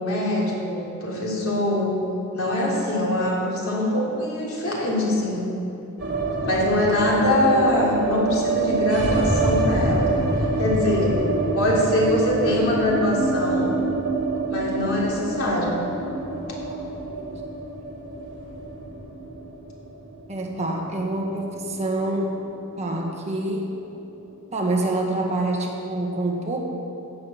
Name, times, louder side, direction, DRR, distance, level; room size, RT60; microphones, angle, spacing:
voice 1, 0.0-2.0 2.3-5.5 6.4-10.1 10.6-11.2 11.5-13.7 14.5-15.8, left 1 dB, 70° left, -4 dB, 3.5 m, -23 dB
sound 1, 6.0-22.1 22.4-22.5 22.7-23.4, right 2 dB, 55° right, 3.0 m, -26 dB
voice 2, 20.3-22.3 22.8-23.7 24.5-26.6, right 2 dB, 30° right, -1 dB, 1.7 m, -26 dB
15.5 x 7.9 x 7.2 m, 3.0 s
head